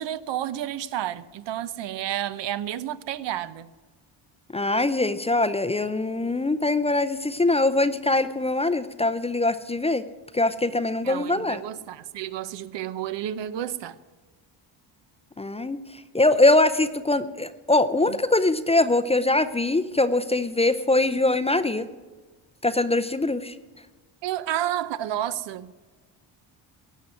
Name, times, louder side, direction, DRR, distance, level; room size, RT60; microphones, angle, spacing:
voice 1, 0.0-3.7 11.0-14.0 18.1-18.2 24.2-25.7, right 11 dB, 70° right, 0.8 m, -31 dB
voice 2, 4.5-10.0 10.3-11.6 15.4-15.8 16.1-21.9 22.6-23.5, left 2 dB, 15° left, 0.5 m, -22 dB
17.0 x 6.3 x 9.6 m
cardioid pair, 110°, 45 cm